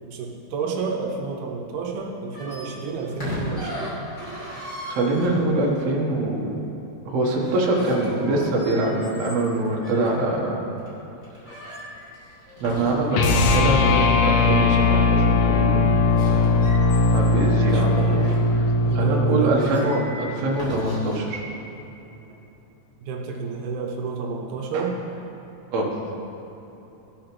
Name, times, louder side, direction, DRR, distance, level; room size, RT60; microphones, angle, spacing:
voice 1, 0.1-3.9 17.5-18.4 18.9-20.1 23.0-25.0, right 4 dB, 80° right, 1 dB, 2.6 m, -30 dB
sound 1, 2.3-5.8 7.3-10.2 10.8-10.9 11.2-13.5 16.0-18.5 19.1-19.2 19.6-21.2, left 1 dB, 25° left, 2.6 m, -36 dB
voice 2, 4.3-6.6 7.0-10.6 12.6-15.9 17.1-18.2 18.9-21.4 24.7-24.9 25.7-26.0, right 2 dB, 60° right, -2 dB, 1.8 m, -24 dB
sound 2, 13.1-19.5, left 3 dB, 80° left, 2.1 m, -19 dB
15.5 x 5.1 x 6.0 m, 3.0 s
omnidirectional pair, 4.7 m